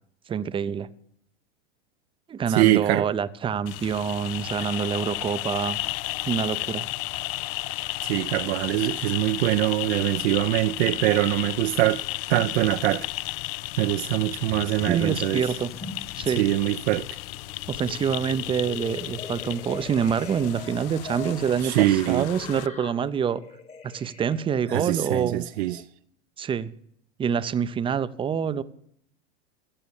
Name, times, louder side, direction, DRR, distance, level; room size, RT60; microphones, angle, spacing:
voice 1, 0.3-0.9 2.3-5.8 6.3-6.8 14.9-15.7 16.2-16.4 17.7-23.4 23.8-25.4 26.4-26.7 27.2-28.6, right 7 dB, 15° right, 0.5 m, -26 dB
voice 2, 2.5-3.1 8.0-12.0 12.3-13.1 13.8-15.5 16.4-17.1 21.6-22.3 24.7-25.8, right 16 dB, 70° right, 0.6 m, -23 dB
sound 1, 3.7-22.7, left 19 dB, 55° left, 0.4 m, -33 dB
sound 2, 14.5-16.4 16.8-25.8, left 4 dB, 20° left, 1.2 m, -42 dB
15.5 x 7.1 x 7.0 m
supercardioid pair, 120°, 35 cm